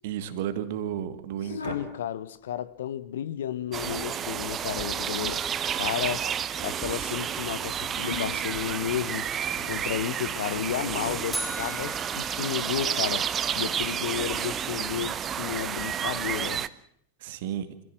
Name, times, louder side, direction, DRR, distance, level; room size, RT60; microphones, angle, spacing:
voice 1, 0.0-1.8 17.2-17.7, right 10 dB, 55° right, 2.2 m, -32 dB
sound 1, 1.4-2.0 3.5-4.3 6.0-6.9 7.9-8.6 9.4-9.8 11.1-11.2, left 4 dB, 75° left, 4.6 m, -39 dB
voice 2, 1.6-5.4 5.8-6.3 6.6-9.3 9.6-13.3 13.5-16.7, left 10 dB, 60° left, 1.2 m, -32 dB
sound 2, 3.7-16.7, right 8 dB, 25° right, 0.9 m, -31 dB
sound 3, 11.3-13.5, equal, 5° right, 3.3 m, -38 dB
26.0 x 16.5 x 7.6 m
figure-of-eight pair, 90°, 0 cm